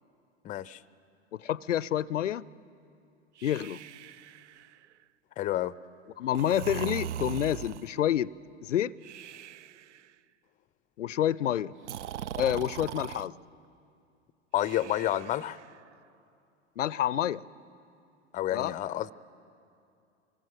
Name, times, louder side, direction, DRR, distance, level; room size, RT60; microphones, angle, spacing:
voice 1, 0.4-0.8 5.4-5.7 14.5-15.6 18.3-19.1, left 13 dB, 20° left, 0.5 m, -29 dB
voice 2, 1.3-2.4 3.4-3.8 6.2-8.3 8.6-8.9 11.0-11.7 12.4-13.3 16.8-17.4 18.5-18.7, left 11 dB, 85° left, 0.5 m, -28 dB
Breathing, 3.4-4.9 6.3-8.0 9.0-10.0 11.8-13.3 14.6-15.8, right 10 dB, 75° right, 0.6 m, -40 dB
24.5 x 18.5 x 7.8 m
hypercardioid pair, 100°, 36 cm